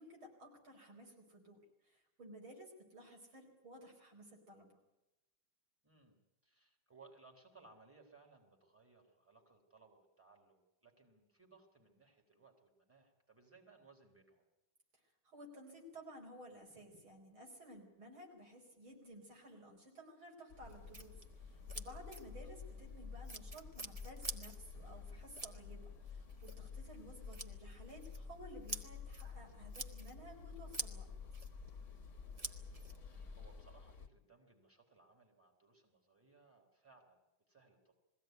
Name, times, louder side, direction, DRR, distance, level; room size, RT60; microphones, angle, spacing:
voice 1, 0.0-4.8 15.2-31.1, equal, 90° right, 0 dB, 5.3 m, -55 dB
voice 2, 5.8-14.5 22.4-22.6 32.4-32.8 33.1-37.9, right 4 dB, 5° right, 1 dB, 3.5 m, -64 dB
sound 1, 20.5-34.1, left 5 dB, 40° left, 1.4 m, -55 dB
sound 2, 20.6-33.6, left 1 dB, 25° right, 0.8 m, -48 dB
21.5 x 16.0 x 9.3 m, 0.95 s
omnidirectional pair, 2.2 m